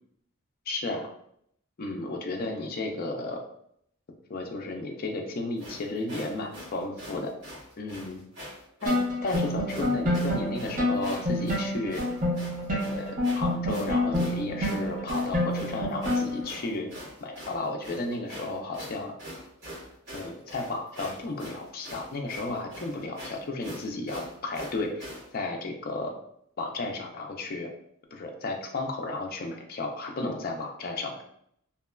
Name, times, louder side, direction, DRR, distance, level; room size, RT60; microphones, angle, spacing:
voice 1, 0.7-1.1 1.8-3.4 4.3-7.3 7.8-8.2 8.8-12.0 12.7-16.9 17.2-19.1 20.1-26.1 26.6-27.7 28.1-31.2, left 2 dB, 40° left, 2 dB, 0.4 m, -33 dB
sound 1, 5.6-25.3, equal, 50° right, 1.4 m, -43 dB
sound 2, 8.9-16.5, left 1 dB, 35° right, 0.6 m, -28 dB
2.9 x 2.2 x 2.2 m, 0.71 s
head